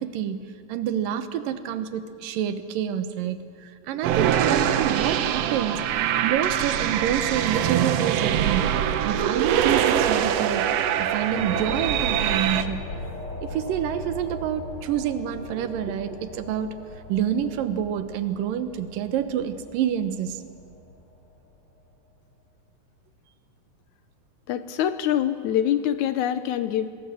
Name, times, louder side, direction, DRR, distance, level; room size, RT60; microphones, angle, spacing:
voice 1, 0.0-5.8 6.2-10.7 11.0-12.9 13.4-16.7 17.1-20.4, right 9 dB, 85° right, 11 dB, 2.8 m, -28 dB
sound 1, 4.0-12.6, right 10 dB, 70° right, 1.6 m, -23 dB
sound 2, 10.4-21.5, left 2 dB, 40° left, 3.4 m, -39 dB
voice 2, 24.5-26.9, left 10 dB, 75° left, 12 dB, 2.0 m, -24 dB
26.0 x 20.0 x 7.7 m, 2.4 s
omnidirectional pair, 3.8 m